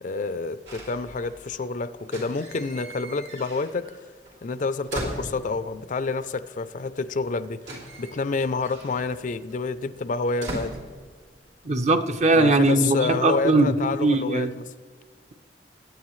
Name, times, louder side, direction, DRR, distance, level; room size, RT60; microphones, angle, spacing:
voice 1, 0.0-4.0 4.4-10.8 12.3-14.6, left 4 dB, 45° left, 13 dB, 0.5 m, -28 dB
sound 1, 0.7-1.7 2.0-4.0 4.3-5.9 6.8-6.9 7.1-11.6 11.9-12.4, right 1 dB, 85° right, 3.2 m, -39 dB
voice 2, 11.6-14.5, right 2 dB, 40° right, 7 dB, 0.8 m, -20 dB
20.5 x 9.0 x 3.1 m, 1.5 s
head